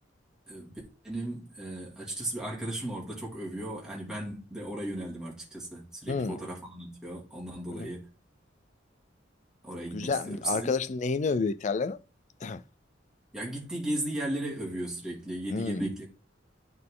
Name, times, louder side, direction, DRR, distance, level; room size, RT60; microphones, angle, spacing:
voice 1, 0.5-8.1 9.6-10.7 13.3-16.1, right 1 dB, 5° right, 2.5 m, -36 dB
voice 2, 6.1-6.4 7.7-7.9 9.9-12.0 12.4-12.6 15.5-15.8, left 4 dB, 40° left, 0.4 m, -30 dB
9.6 x 3.9 x 3.8 m
head